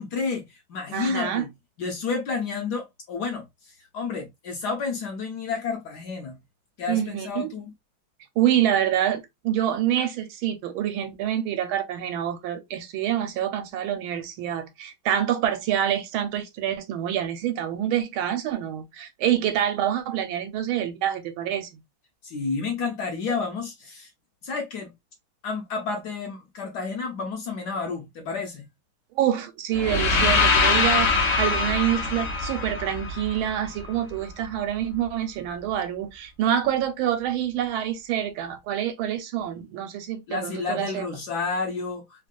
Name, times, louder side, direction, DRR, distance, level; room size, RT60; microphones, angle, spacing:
voice 1, 0.0-1.5 1.8-6.4 6.8-7.7 22.2-24.1 24.4-24.9 25.4-28.7 40.3-42.3, left 4 dB, 70° left, 1.0 m, -30 dB
voice 2, 0.9-1.4 6.9-7.5 8.4-21.8 29.1-41.1, right 10 dB, 85° right, 1.4 m, -26 dB
sound 1, 29.8-33.8, left 4 dB, 85° left, 0.6 m, -23 dB
3.4 x 2.3 x 2.4 m
omnidirectional pair, 2.3 m